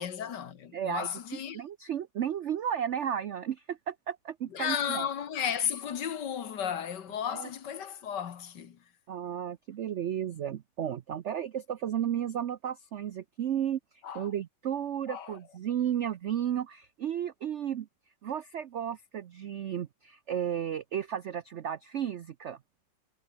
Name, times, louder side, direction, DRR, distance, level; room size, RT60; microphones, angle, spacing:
voice 1, 0.0-1.6 4.5-8.8 14.0-14.3 15.1-15.4, left 8 dB, 65° left, 1.9 m, -34 dB
voice 2, 0.7-1.1 1.5-5.1 7.3-7.5 9.1-13.8 14.1-17.9 18.2-22.6, right 9 dB, 75° right, 0.6 m, -33 dB
omnidirectional pair, 2.0 m